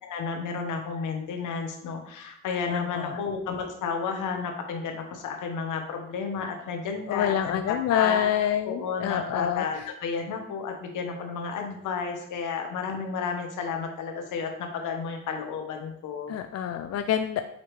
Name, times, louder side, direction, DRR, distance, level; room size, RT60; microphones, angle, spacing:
voice 1, 0.0-8.2 8.6-16.4, left 5 dB, 85° left, 3 dB, 1.3 m, -32 dB
voice 2, 2.7-3.2 7.1-9.7 16.3-17.4, left 10 dB, 55° left, 8 dB, 0.5 m, -27 dB
7.2 x 4.4 x 3.2 m, 0.72 s
cardioid pair, 90°, 30 cm